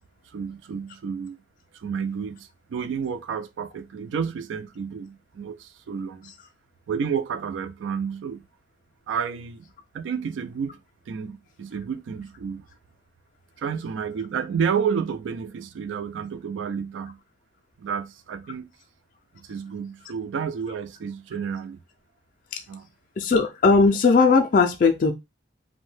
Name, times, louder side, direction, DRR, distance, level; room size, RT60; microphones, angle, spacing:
voice 1, 0.3-1.4 1.7-6.3 6.9-8.4 9.1-9.6 9.9-10.8 11.1-12.7 13.6-17.2 17.8-18.7 19.3-21.8 22.7-22.9, right 6 dB, 85° right, 0.3 m, -30 dB
voice 2, 23.2-25.1, left 4 dB, 45° left, 0.3 m, -18 dB
2.6 x 2.1 x 3.1 m
head